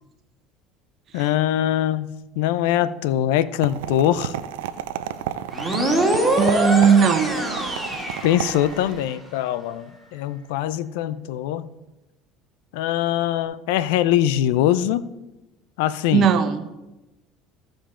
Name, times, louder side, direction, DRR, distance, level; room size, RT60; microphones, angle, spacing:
voice 1, 1.1-4.3 8.2-11.7 12.7-15.0 15.8-16.3, left 12 dB, 80° left, 16 dB, 0.5 m, -22 dB
sound 1, 3.6-9.0, right 11 dB, 85° right, 0.5 m, -32 dB
sound 2, 5.5-9.0, right 1 dB, 5° right, 2.5 m, -24 dB
voice 2, 6.4-7.4 16.1-16.6, right 6 dB, 50° right, 9 dB, 1.0 m, -17 dB
15.0 x 5.1 x 3.8 m, 0.99 s
hypercardioid pair, 80°, 0 cm